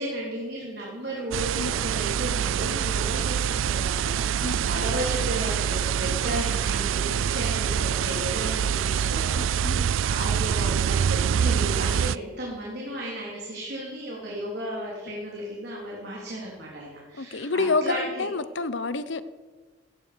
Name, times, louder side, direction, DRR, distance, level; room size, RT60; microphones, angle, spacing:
voice 1, 0.0-18.3, right 1 dB, 55° right, -4 dB, 3.5 m, -34 dB
sound 1, 1.3-12.2, right 8 dB, 85° right, 0.4 m, -25 dB
voice 2, 9.4-9.9 17.2-19.2, left 3 dB, 65° left, 14 dB, 0.9 m, -28 dB
17.5 x 14.5 x 5.2 m, 1.3 s
head